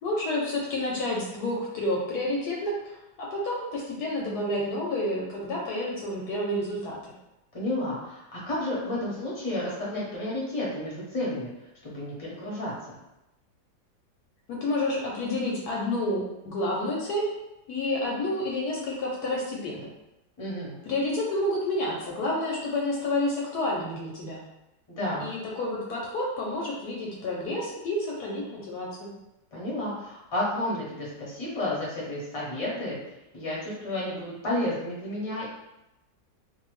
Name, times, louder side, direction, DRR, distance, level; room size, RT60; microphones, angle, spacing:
voice 1, 0.0-7.0 14.5-17.3 17.7-19.9 20.8-24.4 25.2-29.1, left 1 dB, 70° left, -3 dB, 1.1 m, -29 dB
voice 2, 7.5-11.5 11.8-13.0 20.4-20.8 24.9-25.3 29.5-33.0 33.3-35.4, left 1 dB, 25° left, -6 dB, 0.6 m, -31 dB
2.7 x 2.4 x 3.0 m, 0.92 s
omnidirectional pair, 1.9 m